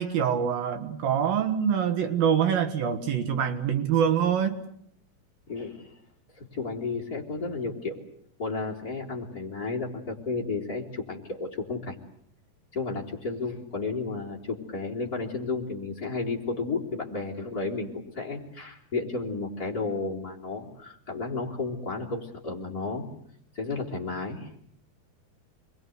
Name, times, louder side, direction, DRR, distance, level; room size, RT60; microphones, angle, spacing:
voice 1, 0.0-4.6, right 8 dB, 65° right, 7 dB, 3.3 m, -25 dB
voice 2, 5.5-5.9 6.4-8.0 8.4-12.0 12.7-23.1 23.5-24.5, left 3 dB, 25° left, 2 dB, 3.7 m, -32 dB
29.5 x 22.0 x 8.0 m, 0.70 s
omnidirectional pair, 4.6 m